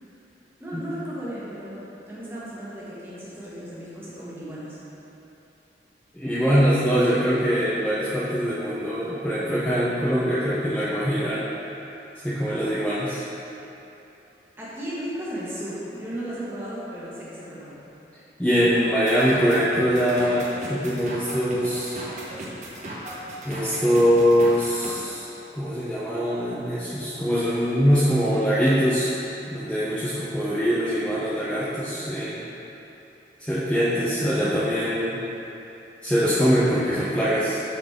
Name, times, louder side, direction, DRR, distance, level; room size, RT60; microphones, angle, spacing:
voice 1, 0.6-4.8 14.6-17.8, right 1 dB, 15° right, -9 dB, 1.3 m, -35 dB
voice 2, 6.1-11.4 12.2-13.2 18.4-22.0 23.4-25.3 25.5-29.1 29.5-32.4 33.4-35.2 36.0-37.6, equal, 5° left, -11 dB, 0.6 m, -23 dB
sound 1, 19.1-24.9, right 1 dB, 40° right, 0.9 m, -36 dB
8.7 x 3.9 x 3.6 m, 3.0 s
head